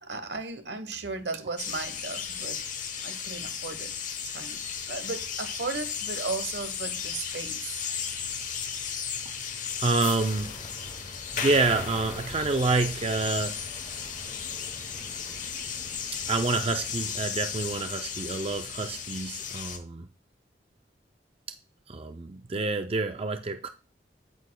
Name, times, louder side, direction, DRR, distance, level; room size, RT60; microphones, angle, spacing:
voice 1, 0.0-2.6 3.0-3.9 4.2-4.6 4.9-7.8, right 4 dB, 80° right, 1.1 m, -35 dB
sound 1, 1.6-19.8, left 7 dB, 45° left, 1.0 m, -35 dB
voice 2, 9.8-10.6 11.3-13.6 16.3-20.1 21.9-23.7, right 3 dB, 35° right, 0.4 m, -28 dB
9.2 x 8.6 x 2.3 m
head